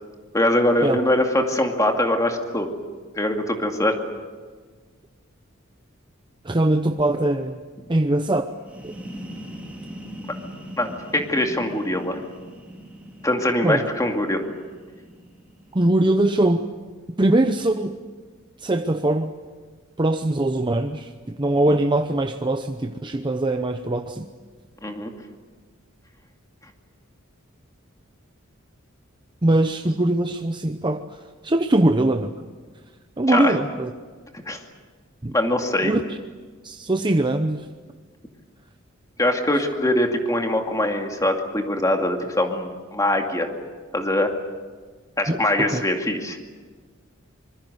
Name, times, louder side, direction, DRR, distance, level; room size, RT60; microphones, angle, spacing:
voice 1, 0.3-2.7 3.2-4.0 10.8-12.2 13.2-14.4 24.8-25.1 33.3-33.6 34.5-34.6 35.3-35.9 39.2-43.5 43.9-44.3 45.2-46.4, left 1 dB, 15° left, 3 dB, 2.4 m, -22 dB
voice 2, 6.4-7.6 7.9-8.5 8.8-8.9 13.6-13.8 15.7-16.7 17.2-17.9 18.6-19.3 20.0-24.3 29.4-31.0 31.4-32.3 33.2-33.9 35.2-35.3 35.8-36.0 36.6-37.6 45.3-45.8, right 1 dB, 25° right, 7 dB, 0.8 m, -21 dB
sound 1, 8.5-16.1, equal, 5° right, 3.8 m, -41 dB
26.0 x 21.5 x 8.1 m, 1.5 s
head